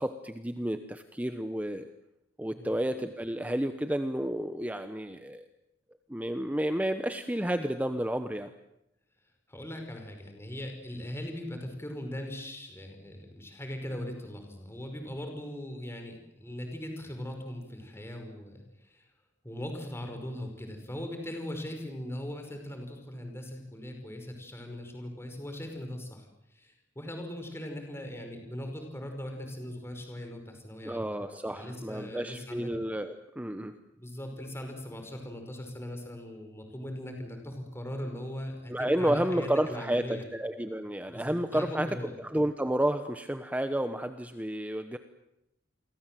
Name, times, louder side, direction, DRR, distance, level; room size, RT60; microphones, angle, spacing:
voice 1, 0.0-1.9 2.4-5.5 6.1-8.5 30.8-33.7 38.7-45.0, right 1 dB, 10° right, 9 dB, 1.1 m, -31 dB
voice 2, 9.5-19.1 19.4-26.3 26.5-31.1 31.4-32.7 34.0-40.3 41.1-41.3 41.5-42.2, left 1 dB, 15° left, 4 dB, 5.5 m, -40 dB
29.5 x 24.0 x 7.8 m, 0.84 s
head